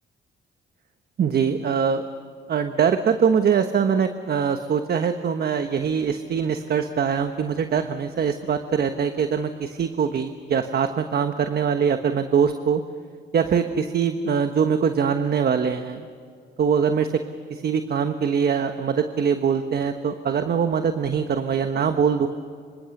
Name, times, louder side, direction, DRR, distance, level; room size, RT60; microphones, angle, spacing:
voice 1, 1.2-2.0 2.5-12.8 13.3-16.1 16.6-17.1 17.5-22.3, right 7 dB, 50° right, 7 dB, 1.3 m, -23 dB
26.5 x 24.5 x 6.7 m, 2.1 s
cardioid pair, 90°, 20 cm